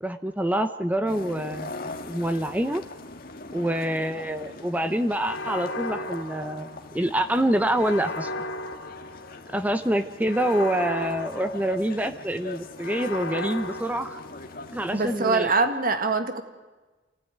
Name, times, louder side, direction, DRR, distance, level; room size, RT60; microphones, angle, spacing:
voice 1, 0.0-2.8 3.5-8.3 9.5-14.2 14.7-15.5, right 1 dB, 10° right, 8 dB, 0.8 m, -26 dB
sound 1, 1.1-15.4, left 2 dB, 50° left, 1.7 m, -42 dB
sound 2, 5.2-7.1 7.7-9.5 10.2-12.1 12.8-14.7, left 2 dB, 90° left, 2.9 m, -35 dB
voice 2, 14.9-16.4, right 3 dB, 50° right, 8 dB, 1.8 m, -23 dB
27.5 x 16.5 x 9.5 m, 1.2 s
head